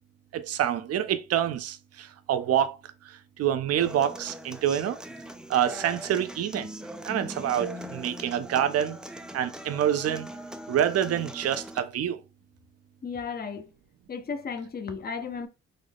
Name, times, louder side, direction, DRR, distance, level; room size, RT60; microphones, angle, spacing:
voice 1, 0.3-2.8 3.4-5.0 5.5-6.7 7.1-9.0 9.3-10.3 10.7-12.2, right 10 dB, 55° right, 0.5 m, -26 dB
Human voice / Acoustic guitar, 3.8-11.8, equal, 5° right, 0.3 m, -41 dB
voice 2, 13.0-13.7 14.1-15.5, left 5 dB, 30° left, 0.6 m, -34 dB
3.8 x 2.1 x 3.4 m
cardioid pair, 75°, 30 cm